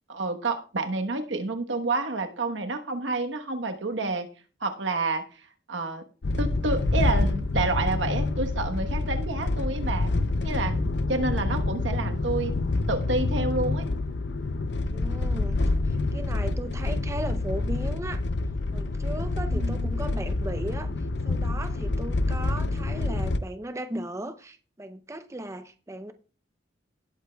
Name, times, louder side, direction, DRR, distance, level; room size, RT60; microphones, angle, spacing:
voice 1, 0.1-4.3 4.6-5.4 5.7-6.0 6.4-10.1 10.4-12.5 12.9-13.9 19.5-19.9, right 3 dB, 85° right, 1.2 m, -29 dB
sound 1, 6.2-23.4, left 2 dB, 65° left, 0.6 m, -27 dB
voice 2, 14.8-15.6 15.9-18.2 18.7-20.9 21.2-26.1, right 1 dB, 15° right, 0.6 m, -36 dB
18.0 x 8.1 x 2.3 m
head